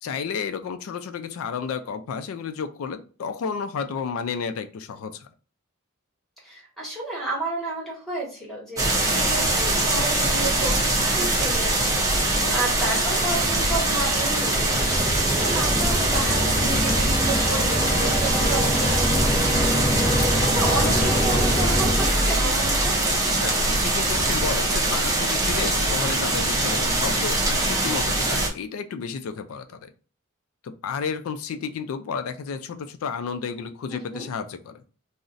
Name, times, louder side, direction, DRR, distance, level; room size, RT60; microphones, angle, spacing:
voice 1, 0.0-5.3 12.4-12.7 23.4-29.9 30.6-34.8, left 6 dB, 80° left, 9 dB, 0.3 m, -32 dB
voice 2, 6.4-15.0 15.3-19.7 20.0-22.9 33.9-34.3, right 2 dB, ahead, -5 dB, 1.1 m, -32 dB
sound 1, 8.8-28.5, right 2 dB, 15° right, 0.5 m, -23 dB
sound 2, 14.1-22.6, equal, 30° left, 0.6 m, -26 dB
2.5 x 2.0 x 3.8 m, 0.37 s
head